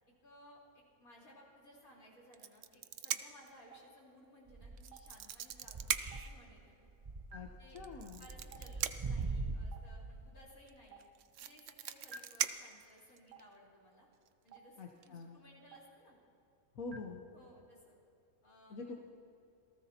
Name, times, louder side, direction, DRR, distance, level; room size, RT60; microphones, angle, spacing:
voice 1, 0.2-6.9 7.6-7.8 8.2-11.0 11.4-14.1 14.4-16.2 17.3-18.0 18.4-18.8, equal, 85° left, -4 dB, 4.4 m, -60 dB
sound 1, 2.3-3.5 4.8-6.3 7.8-9.2 10.7-10.8 11.0-13.4 14.3-14.5 14.8-15.1, right 10 dB, 65° right, 0.9 m, -39 dB
Stream, 3.7-3.8 4.9-5.0 6.1-6.2 7.3-7.4 8.5-8.6 9.7-9.8 10.9-11.0 12.1-12.2 13.3-13.4 14.5-14.6 15.7-15.8 16.9-17.0, right 4 dB, 80° right, 1.8 m, -50 dB
sound 2, 4.5-5.1 5.6-6.3 6.6-6.7 7.0-10.3, right 3 dB, 45° right, 0.4 m, -41 dB
voice 2, 7.7-8.2 14.8-15.4 16.7-17.2 18.7-18.9, left 3 dB, 70° left, 0 dB, 1.5 m, -45 dB
27.5 x 18.5 x 2.9 m, 2.6 s
omnidirectional pair, 1.5 m